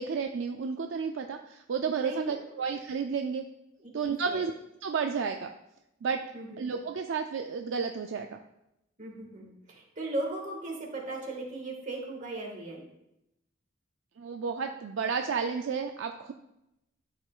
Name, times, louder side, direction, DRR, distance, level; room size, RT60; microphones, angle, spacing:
voice 1, 0.0-3.4 3.9-4.5 4.8-5.5 6.0-6.2 6.6-8.4 14.2-16.3, right 5 dB, 65° right, 5 dB, 0.4 m, -32 dB
voice 2, 2.0-2.4 3.8-3.9 4.2-4.4 6.3-6.6 9.0-12.8, right 2 dB, 40° right, -1 dB, 1.7 m, -37 dB
12.0 x 5.0 x 2.4 m, 0.87 s
head